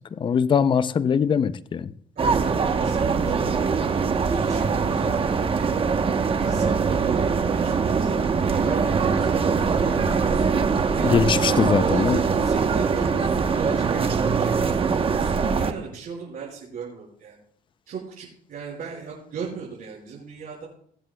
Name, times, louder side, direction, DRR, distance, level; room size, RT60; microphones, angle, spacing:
voice 1, 0.1-1.9 11.0-12.2, left 7 dB, 30° left, 0.5 m, -21 dB
sound 1, 2.2-15.7, right 5 dB, 35° right, 1.0 m, -22 dB
voice 2, 2.2-3.6 4.2-5.7 6.4-8.1 8.4-10.6 10.9-11.2 11.9-17.4 17.9-20.7, right 5 dB, 60° right, 5.1 m, -36 dB
23.5 x 7.8 x 2.3 m
cardioid pair, 110°, 17 cm